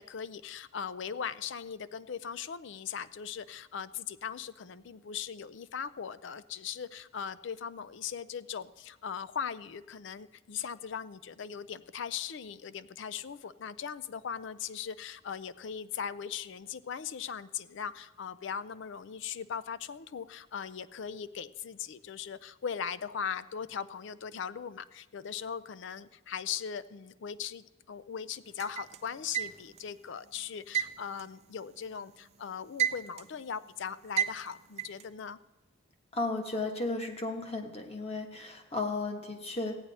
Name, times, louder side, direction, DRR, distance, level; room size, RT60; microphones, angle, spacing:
voice 1, 0.0-35.4, left 7 dB, 65° left, 16 dB, 0.4 m, -39 dB
sound 1, 28.6-29.9 30.7-32.1 32.5-33.4 34.2-35.0, right 9 dB, 30° right, 0.4 m, -32 dB
voice 2, 36.1-39.8, left 2 dB, 30° left, 3 dB, 1.3 m, -34 dB
15.0 x 9.5 x 4.1 m, 1.2 s
head